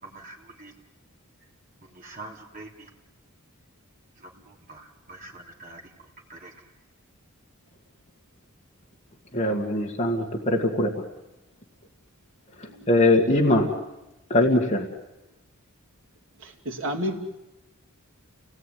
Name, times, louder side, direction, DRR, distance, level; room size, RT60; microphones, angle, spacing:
voice 1, 0.0-0.7 1.8-2.9 4.2-5.9 6.3-6.5, right 2 dB, 40° right, 0 dB, 3.5 m, -45 dB
voice 2, 9.3-10.9 12.6-13.7 14.3-14.9, left 1 dB, 35° left, 0 dB, 2.1 m, -21 dB
voice 3, 16.4-17.4, equal, 60° right, 3 dB, 2.9 m, -32 dB
29.5 x 18.5 x 9.5 m, 1.0 s
head